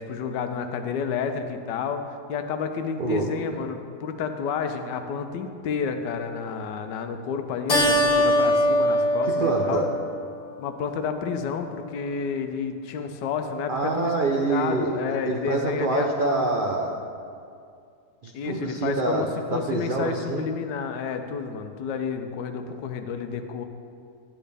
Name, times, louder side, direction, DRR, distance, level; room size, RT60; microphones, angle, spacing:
voice 1, 0.0-9.9 10.6-14.1 14.5-16.4 18.3-23.7, left 6 dB, 90° left, 7 dB, 1.3 m, -30 dB
Keyboard (musical), 7.7-10.6, equal, 30° left, 1.0 m, -22 dB
voice 2, 9.2-9.9 13.7-17.0 18.2-20.5 22.6-22.8, right 3 dB, 70° right, -1 dB, 0.5 m, -26 dB
11.0 x 8.7 x 3.4 m, 2.3 s
omnidirectional pair, 1.8 m